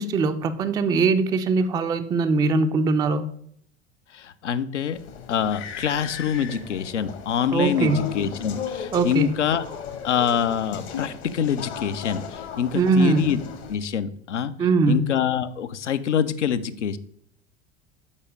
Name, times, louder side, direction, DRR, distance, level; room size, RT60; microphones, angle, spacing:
voice 1, 0.0-3.3 7.5-8.1 8.9-9.3 12.7-13.3 14.6-15.1, right 3 dB, 10° right, 9 dB, 0.3 m, -21 dB
voice 2, 4.1-5.0 5.3-9.6 10.0-13.4 13.7-14.5 14.9-17.0, left 8 dB, 80° left, 12 dB, 0.5 m, -25 dB
sound 1, 4.9-13.8, left 7 dB, 60° left, 1.1 m, -36 dB
7.2 x 4.1 x 5.1 m, 0.67 s
figure-of-eight pair, 75°, 35 cm